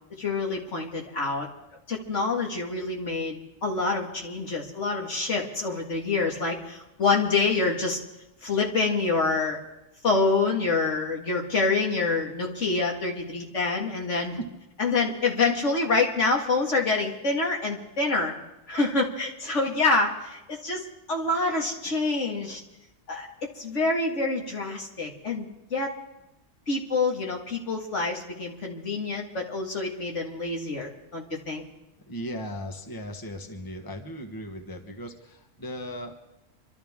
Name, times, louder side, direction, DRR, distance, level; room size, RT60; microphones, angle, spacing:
voice 1, 0.2-1.5 1.9-8.0 8.4-9.6 10.0-14.4 14.8-18.3 18.7-22.6 23.1-25.9 26.7-31.6, left 3 dB, 70° left, 0 dB, 2.3 m, -26 dB
voice 2, 32.1-36.1, equal, 20° left, 4 dB, 1.3 m, -37 dB
26.0 x 12.5 x 3.6 m, 0.93 s
omnidirectional pair, 1.3 m